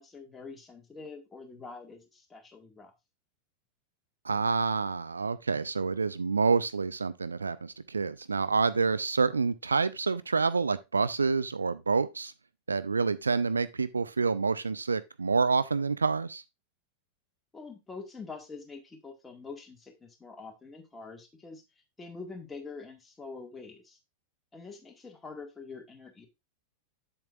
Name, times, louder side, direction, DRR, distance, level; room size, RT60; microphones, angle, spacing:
voice 1, 0.0-2.9 17.5-21.6 22.0-24.0 24.5-26.3, left 4 dB, 15° left, 1.7 m, -45 dB
voice 2, 4.2-12.3 12.7-16.4, right 4 dB, 75° right, 0.4 m, -28 dB
7.8 x 7.4 x 2.4 m
figure-of-eight pair, 90°, 0 cm